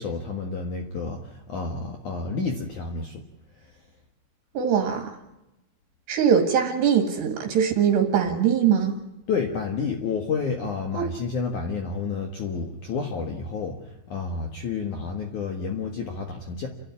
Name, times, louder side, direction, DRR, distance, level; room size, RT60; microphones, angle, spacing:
voice 1, 0.0-3.3 9.3-16.7, left 5 dB, 55° left, 3 dB, 2.5 m, -30 dB
voice 2, 4.6-5.1 6.1-9.0 10.9-11.1, right 8 dB, 70° right, 4 dB, 3.8 m, -22 dB
30.0 x 12.5 x 9.7 m, 0.95 s
omnidirectional pair, 5.2 m